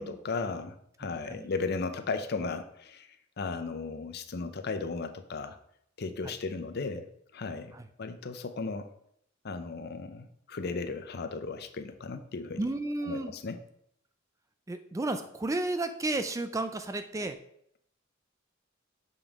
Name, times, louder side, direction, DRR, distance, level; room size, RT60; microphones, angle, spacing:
voice 1, 0.0-3.1 3.4-5.6 6.0-7.0 7.3-8.9 9.4-12.7 13.1-13.6, left 4 dB, 55° left, 9 dB, 0.6 m, -35 dB
voice 2, 12.6-13.3 14.7-17.4, right 2 dB, 15° right, 9 dB, 0.4 m, -32 dB
7.0 x 5.4 x 3.5 m, 0.71 s
head